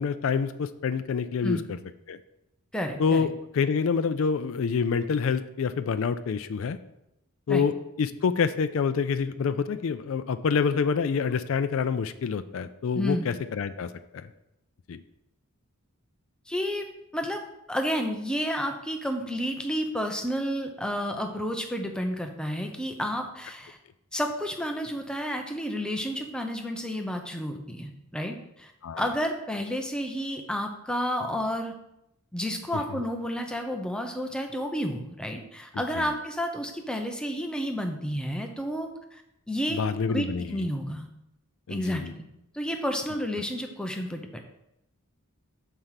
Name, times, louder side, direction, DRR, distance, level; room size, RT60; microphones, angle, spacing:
voice 1, 0.0-1.6 2.1-2.2 3.0-3.3 3.5-6.8 7.5-7.7 8.0-14.3 14.9-15.0 28.8-29.0 35.9-36.1 39.7-40.6 41.7-42.1, left 6 dB, 65° left, 10 dB, 0.4 m, -27 dB
voice 2, 2.7-3.3 7.5-7.6 12.9-13.3 16.5-16.9 17.1-17.4 17.7-23.8 24.1-28.7 29.0-31.7 32.3-39.2 39.5-39.8 40.1-41.1 41.7-42.2 42.5-44.4, equal, 5° left, 4 dB, 0.7 m, -31 dB
6.6 x 4.6 x 5.7 m, 0.85 s
head